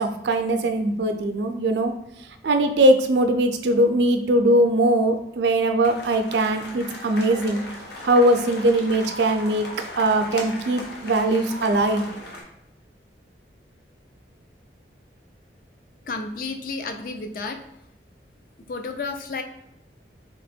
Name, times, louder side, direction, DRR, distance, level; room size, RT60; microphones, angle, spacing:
voice 1, 0.0-1.9 2.4-7.6 8.0-9.7 10.0-12.0, right 1 dB, 75° right, 7 dB, 0.5 m, -20 dB
sound 1, 5.8-12.4, left 1 dB, 70° left, 0.9 m, -38 dB
voice 2, 16.0-17.6 18.7-19.4, left 3 dB, 50° left, 7 dB, 0.4 m, -31 dB
3.4 x 3.0 x 4.2 m, 0.87 s
head